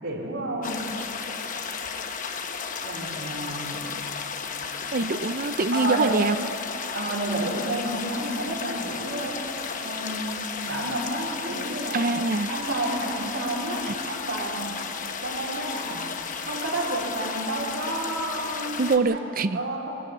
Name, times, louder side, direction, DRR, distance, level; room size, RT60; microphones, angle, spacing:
voice 1, 0.0-0.8 2.8-3.8 5.2-5.3 5.7-6.1 6.9-12.1 12.5-14.6 15.2-16.0 16.4-19.2 19.5-19.9, right 1 dB, 65° right, -4 dB, 4.4 m, -30 dB
sound 1, 0.6-19.0, left 5 dB, 40° left, 1.0 m, -34 dB
voice 2, 4.9-6.4 11.9-12.5 13.9-14.0 18.8-19.6, right 3 dB, 45° right, 12 dB, 0.6 m, -24 dB
20.5 x 20.0 x 8.1 m, 3.0 s
head